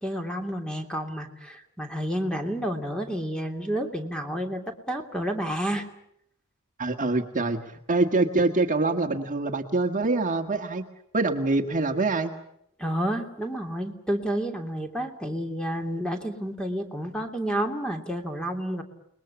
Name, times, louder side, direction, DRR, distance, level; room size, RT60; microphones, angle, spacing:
voice 1, 0.0-4.6 4.9-5.9 12.8-18.8, equal, 5° left, 4 dB, 2.9 m, -30 dB
voice 2, 6.8-10.9 11.1-12.3, right 3 dB, 40° right, 4 dB, 1.8 m, -25 dB
29.5 x 21.0 x 7.2 m, 0.73 s
head